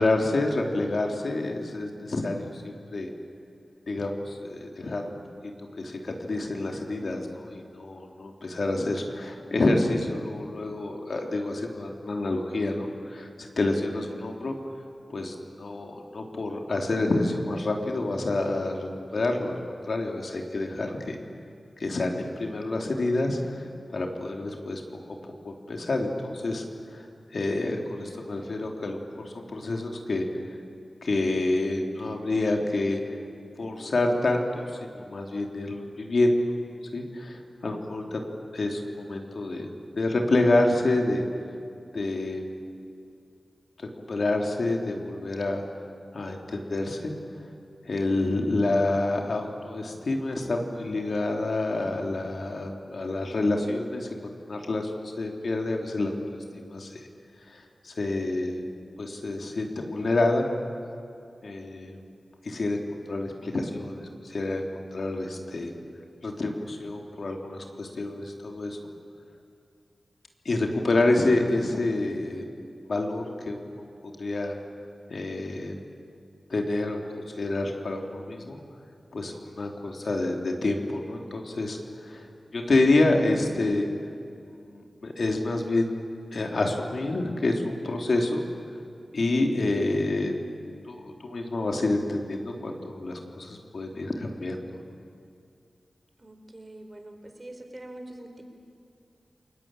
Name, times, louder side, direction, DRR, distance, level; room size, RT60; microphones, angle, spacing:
voice 1, 0.0-3.1 3.9-5.1 5.8-14.5 15.1-19.6 19.9-21.2 21.8-24.8 25.4-26.6 26.9-27.1 27.3-30.3 31.0-33.2 33.6-36.3 36.9-38.2 38.5-39.7 40.0-41.2 41.9-42.4 43.8-45.6 46.1-47.1 47.8-56.2 56.7-57.0 57.5-58.6 59.0-60.5 61.4-62.0 62.4-62.8 63.1-64.6 64.9-65.7 66.2-68.8 70.4-72.4 72.9-74.6 75.1-75.8 76.5-78.6 79.1-83.9 84.5-85.9 86.3-88.4 89.1-90.3 90.9-94.8, left 2 dB, 70° left, 2 dB, 3.2 m, -28 dB
voice 2, 96.2-98.4, right 1 dB, 35° right, 5 dB, 4.3 m, -45 dB
29.0 x 22.0 x 9.0 m, 2.5 s
wide cardioid pair, 80°, 0 cm